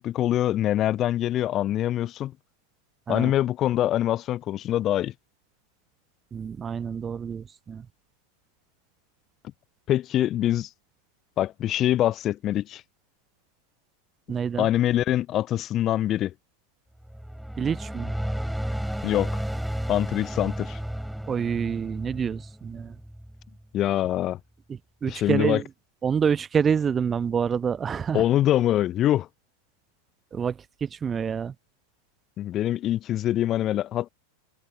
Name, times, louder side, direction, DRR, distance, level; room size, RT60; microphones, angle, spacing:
voice 1, 0.0-2.3 3.1-5.1 9.9-10.7 11.4-12.8 14.6-16.3 19.0-19.4 19.9-20.8 23.7-24.4 25.1-25.6 28.1-29.3 32.4-34.1, left 12 dB, 30° left, 0.5 m, -24 dB
voice 2, 6.3-7.9 14.3-14.7 17.6-18.1 21.3-23.0 24.7-25.7 26.0-28.2 30.3-31.5, right 7 dB, 20° right, 0.9 m, -27 dB
sound 1, 17.0-23.6, equal, ahead, 6.2 m, -33 dB
figure-of-eight pair, 90°, 0 cm